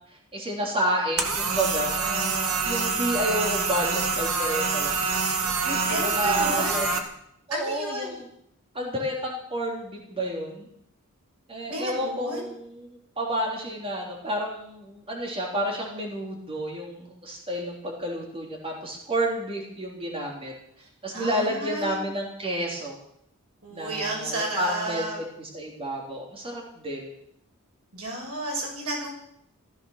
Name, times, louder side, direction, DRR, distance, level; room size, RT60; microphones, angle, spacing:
voice 1, 0.3-6.9 7.5-8.3 8.7-10.7 11.5-20.5 21.0-23.0 23.7-27.1, right 1 dB, 25° right, -1 dB, 3.5 m, -30 dB
sound 1, 1.2-7.0, right 4 dB, 70° right, 2.2 m, -26 dB
voice 2, 5.8-6.9 7.5-8.1 11.7-12.5 21.1-22.1 23.6-25.2 27.9-29.1, right 1 dB, 90° right, -2 dB, 7.2 m, -32 dB
15.0 x 14.5 x 6.6 m, 0.73 s
head